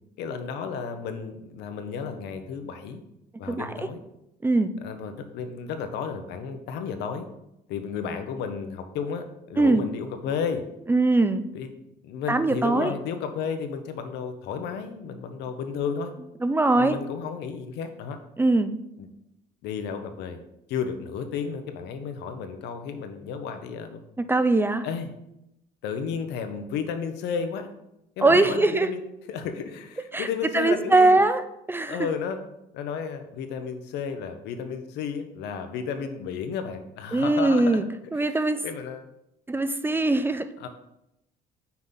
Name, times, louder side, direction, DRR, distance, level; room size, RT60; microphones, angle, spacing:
voice 1, 0.2-3.0 3.4-4.0 4.8-7.3 7.7-10.6 11.5-11.7 12.0-16.1 16.8-18.2 19.0-19.1 19.6-20.4 20.7-24.0 24.8-25.1 25.8-27.7 28.2-29.0 29.3-31.2 31.9-32.4 32.7-37.8 38.1-39.1 40.6-40.7, left 6 dB, 85° left, 7 dB, 0.8 m, -32 dB
voice 2, 4.4-4.7 9.6-9.9 10.9-11.5 12.3-12.9 16.4-17.0 18.4-18.8 24.3-24.9 28.2-28.9 30.1-30.3 30.5-32.1 37.1-38.6 39.5-40.5, right 2 dB, 15° right, 10 dB, 0.4 m, -21 dB
5.8 x 3.7 x 5.7 m, 0.85 s
cardioid pair, 110°, 17 cm